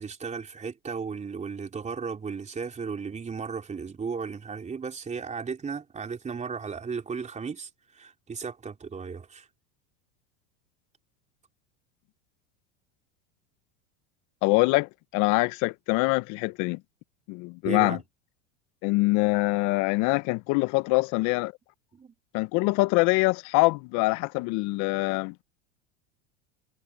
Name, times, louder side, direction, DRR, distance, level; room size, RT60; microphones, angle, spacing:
voice 1, 0.0-7.7 7.9-9.5 17.6-18.0 21.9-22.1, right 5 dB, 20° right, 3.8 m, -35 dB
voice 2, 14.4-16.8 17.3-18.0 18.8-21.5 22.3-25.3, left 24 dB, 55° left, 1.1 m, -24 dB
supercardioid pair, 105°, 35 cm